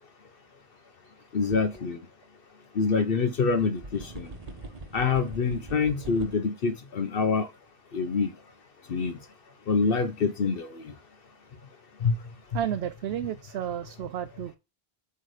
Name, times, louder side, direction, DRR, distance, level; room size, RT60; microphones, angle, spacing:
voice 1, 1.3-2.0 2.7-4.3 4.9-7.5 7.9-8.3 8.9-9.2 9.7-10.9 12.0-12.2, left 5 dB, 60° left, 0.9 m, -26 dB
sound 1, 1.5-1.8 2.2-2.3 3.5-6.4, right 2 dB, 40° right, 1.0 m, -43 dB
voice 2, 12.5-14.6, right 10 dB, 75° right, 0.8 m, -32 dB
8.2 x 3.2 x 4.8 m
omnidirectional pair, 1.1 m